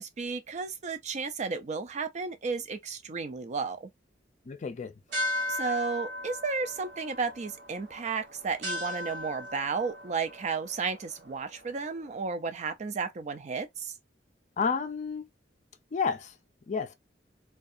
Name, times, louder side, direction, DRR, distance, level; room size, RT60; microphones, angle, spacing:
voice 1, 0.0-3.9 5.5-13.9, right 4 dB, 40° right, 0.4 m, -33 dB
voice 2, 4.5-4.9 14.6-15.3 15.9-16.4 16.7-16.9, left 5 dB, 40° left, 0.4 m, -30 dB
sound 1, 5.1-12.0, left 1 dB, 75° right, 1.0 m, -37 dB
2.6 x 2.3 x 2.4 m
head